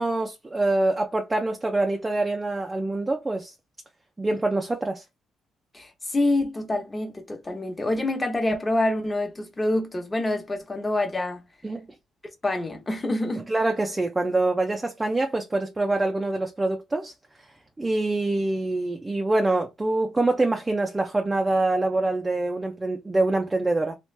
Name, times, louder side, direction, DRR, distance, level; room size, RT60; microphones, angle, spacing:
voice 1, 0.0-3.5 4.2-5.0 11.6-11.9 13.5-17.1 17.8-24.0, right 2 dB, 20° right, 0.5 m, -25 dB
voice 2, 5.7-11.4 12.4-13.5, left 2 dB, 20° left, 1.0 m, -26 dB
3.1 x 2.5 x 3.2 m
cardioid pair, 90°, 0 cm